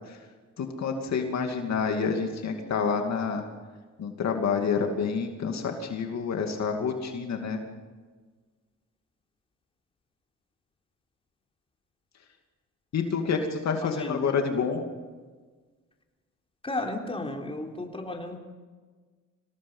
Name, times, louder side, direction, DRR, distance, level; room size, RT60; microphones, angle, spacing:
voice 1, 0.6-3.4 4.0-7.6 12.9-14.8, left 5 dB, 60° left, 4 dB, 2.6 m, -28 dB
voice 2, 13.8-14.4 16.6-18.4, left 2 dB, 20° left, 1 dB, 3.7 m, -34 dB
25.5 x 18.0 x 5.6 m, 1.4 s
cardioid pair, 90°, 30 cm